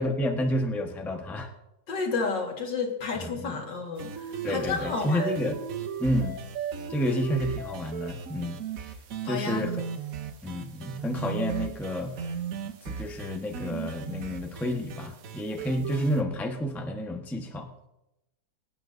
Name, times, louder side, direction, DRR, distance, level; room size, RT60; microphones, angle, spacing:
voice 1, 0.0-1.5 3.1-3.6 4.4-5.6 6.0-6.4 6.9-8.6 9.2-9.7 10.4-12.1 12.9-17.9, equal, ahead, 2 dB, 0.8 m, -30 dB
voice 2, 1.9-5.4 9.2-9.7, left 4 dB, 75° left, 2 dB, 2.4 m, -31 dB
sound 1, 4.0-16.2, right 7 dB, 55° right, 1.2 m, -36 dB
24.5 x 9.5 x 2.6 m, 0.92 s
omnidirectional pair, 2.0 m